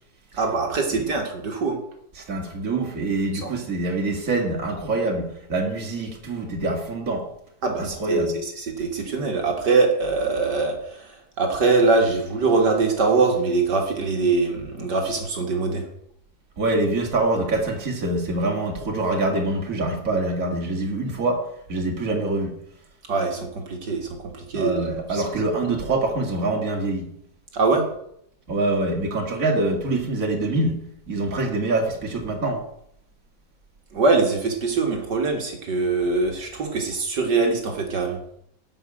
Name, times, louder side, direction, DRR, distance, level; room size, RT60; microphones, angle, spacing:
voice 1, 0.4-1.8 3.4-3.5 7.6-8.2 8.8-15.8 23.1-24.1 24.3-25.2 27.5-27.8 33.9-38.2, right 3 dB, 65° right, 2 dB, 2.4 m, -23 dB
voice 2, 2.2-7.3 7.8-8.4 16.6-22.6 24.5-27.1 28.5-30.8 31.1-32.7, right 2 dB, 45° right, 1 dB, 2.5 m, -25 dB
12.5 x 5.4 x 8.8 m, 0.72 s
omnidirectional pair, 2.0 m